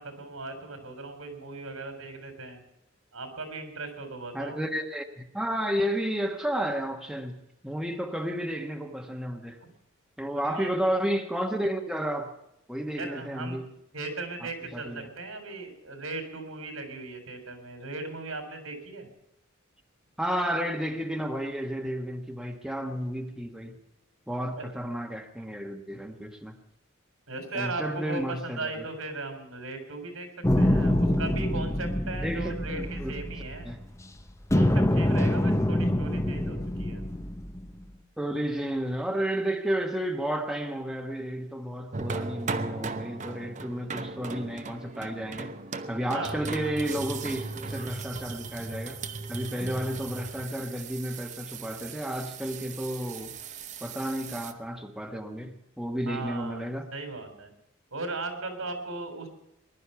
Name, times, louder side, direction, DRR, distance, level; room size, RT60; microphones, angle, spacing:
voice 1, 0.0-2.6 3.1-4.6 9.6-9.7 10.4-10.7 13.0-13.6 13.9-19.1 24.6-24.7 27.3-30.3 30.6-33.7 34.5-37.0 43.4-43.5 46.1-46.4 56.1-57.5 57.9-59.3, right 3 dB, 90° right, 4.1 m, -37 dB
voice 2, 4.3-9.6 10.2-12.3 12.7-13.7 14.4-15.1 20.2-23.8 24.3-26.5 27.5-28.9 32.2-33.1 33.6-33.8 38.2-45.5 45.9-49.0 49.3-53.3 53.8-56.9, equal, 5° right, 1.2 m, -32 dB
sound 1, 30.4-34.0 34.5-37.8, left 1 dB, 15° left, 0.8 m, -25 dB
sound 2, 41.9-54.5, right 3 dB, 35° right, 0.9 m, -37 dB
20.5 x 11.5 x 5.8 m
head